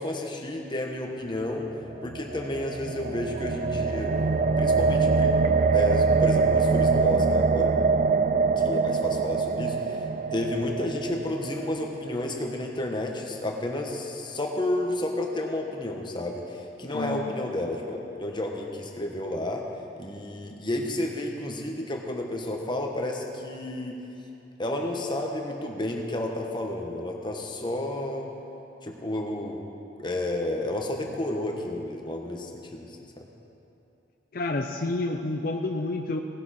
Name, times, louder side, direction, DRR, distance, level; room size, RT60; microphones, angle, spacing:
voice 1, 0.0-1.7 2.0-4.1 4.6-5.3 5.7-7.7 8.6-10.0 10.3-19.6 20.0-24.0 24.6-28.3 28.8-29.6 30.0-33.3, left 1 dB, 25° left, 1 dB, 1.2 m, -31 dB
sound 1, 1.9-12.1, right 4 dB, 45° right, 0.4 m, -24 dB
voice 2, 16.9-17.4 34.3-36.2, left 2 dB, 55° left, 3 dB, 0.6 m, -29 dB
18.5 x 11.0 x 4.3 m, 2.9 s
head